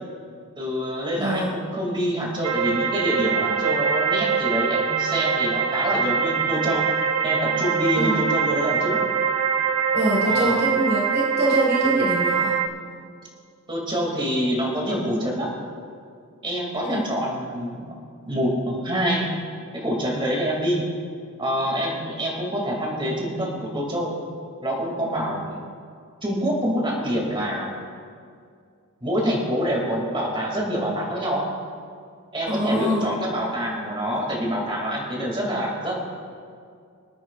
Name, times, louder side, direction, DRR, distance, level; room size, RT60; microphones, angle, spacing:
voice 1, 0.6-6.9 7.2-9.0 10.2-10.6 13.7-15.5 16.4-17.9 18.3-19.3 19.7-20.8 21.4-24.1 24.6-25.6 26.2-27.7 29.0-31.4 32.3-36.0, equal, 25° right, -2 dB, 2.5 m, -26 dB
voice 2, 1.1-1.5 7.9-8.2 9.9-12.6 16.8-17.1 32.5-33.1, right 1 dB, 50° right, -3 dB, 1.7 m, -24 dB
sound 1, 2.4-12.7, right 6 dB, 85° right, 0.7 m, -23 dB
25.0 x 9.2 x 2.5 m, 2.3 s
head